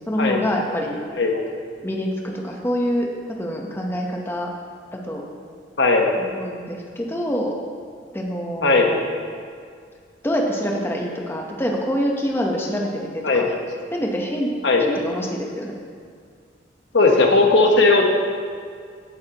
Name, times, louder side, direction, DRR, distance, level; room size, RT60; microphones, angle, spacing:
voice 1, 0.1-1.0 1.8-4.5 4.9-5.2 6.2-7.5 8.1-9.0 10.2-13.5 13.9-14.5 14.8-15.8, equal, 15° left, 0 dB, 0.9 m, -26 dB
voice 2, 5.8-6.2 8.6-8.9 13.2-13.6 14.6-14.8 16.9-18.0, left 3 dB, 70° left, 2 dB, 1.1 m, -17 dB
14.5 x 8.8 x 2.9 m, 2.1 s
head